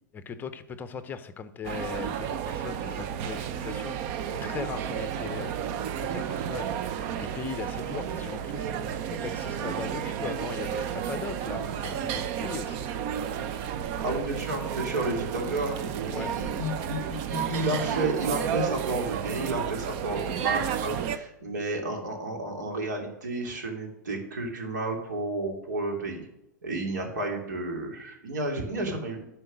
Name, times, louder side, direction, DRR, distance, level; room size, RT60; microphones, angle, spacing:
voice 1, 0.1-4.0 4.4-5.5 6.0-6.7 7.2-8.7 9.1-12.9 16.1-16.3, left 6 dB, 20° left, 11 dB, 0.7 m, -38 dB
sound 1, 1.6-21.2, right 9 dB, 45° right, 0.7 m, -32 dB
voice 2, 14.0-26.2 26.6-29.2, right 2 dB, 75° right, 1 dB, 2.9 m, -31 dB
11.5 x 4.5 x 6.2 m, 0.89 s
hypercardioid pair, 115°, 10 cm